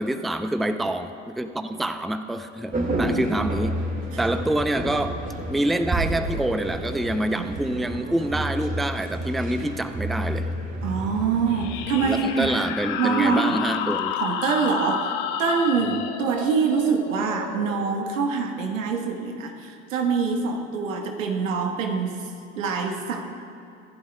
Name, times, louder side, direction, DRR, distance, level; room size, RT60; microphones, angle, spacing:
voice 1, 0.0-3.8 4.2-5.2 5.5-10.5 12.0-14.2 15.8-16.0, right 1 dB, ahead, 9 dB, 0.5 m, -26 dB
sound 1, 2.7-12.6, right 1 dB, 20° right, 1.9 m, -30 dB
voice 2, 2.9-3.5 4.1-4.3 7.4-7.5 7.7-7.8 10.8-12.5 13.0-13.6 14.2-22.3 22.6-23.2, right 5 dB, 90° right, 4 dB, 1.3 m, -25 dB
sound 2, 11.5-18.7, left 9 dB, 70° left, 0.9 m, -31 dB
24.5 x 11.5 x 2.2 m, 2.6 s
hypercardioid pair, 75°, 38 cm